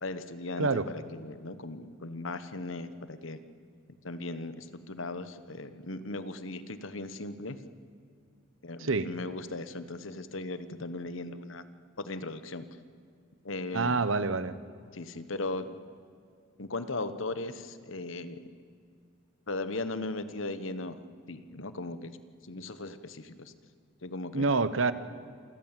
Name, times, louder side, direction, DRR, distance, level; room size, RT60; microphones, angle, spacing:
voice 1, 0.0-3.4 4.0-7.6 8.6-11.6 12.0-12.6 13.4-14.0 14.9-15.8 16.6-18.4 19.5-21.0 21.3-22.1 22.4-23.5 24.0-24.5, left 2 dB, 70° left, 12 dB, 1.3 m, -37 dB
voice 2, 13.7-14.6 24.3-24.9, right 3 dB, 75° right, 14 dB, 1.0 m, -27 dB
27.5 x 15.0 x 9.1 m, 2.3 s
head